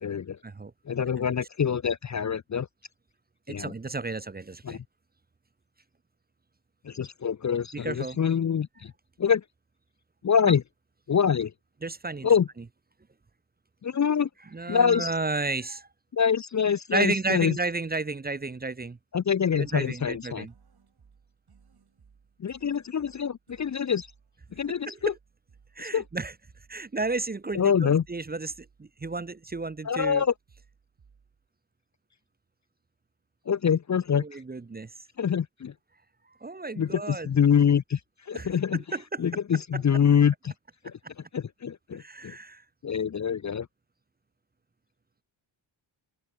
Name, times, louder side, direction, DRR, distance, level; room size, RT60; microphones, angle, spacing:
voice 1, 0.0-0.4 0.9-2.7 3.5-3.7 4.6-4.8 6.8-8.9 9.2-9.4 10.2-10.6 11.1-11.5 12.2-12.5 13.8-14.3 14.7-15.1 16.1-17.5 19.1-20.5 22.4-24.1 24.6-25.1 25.9-26.0 27.5-28.0 29.8-30.3 33.5-34.2 35.2-35.7 36.8-38.0 38.3-38.8 39.2-40.5 40.8-41.0 41.3-42.4 42.8-43.7, left 7 dB, 40° left, 0.6 m, -25 dB
voice 2, 3.5-4.8 7.7-8.2 10.5-10.6 11.8-12.3 14.5-15.9 16.9-19.0 19.5-20.5 24.9-25.1 25.8-26.3 26.7-30.2 34.2-34.9 36.4-37.3 38.3-39.2 39.7-39.8 42.0-42.6, right 3 dB, 20° right, 0.7 m, -32 dB
sound 1, 19.5-31.5, right 6 dB, 50° right, 7.8 m, -61 dB
open air
wide cardioid pair, 145°, 47 cm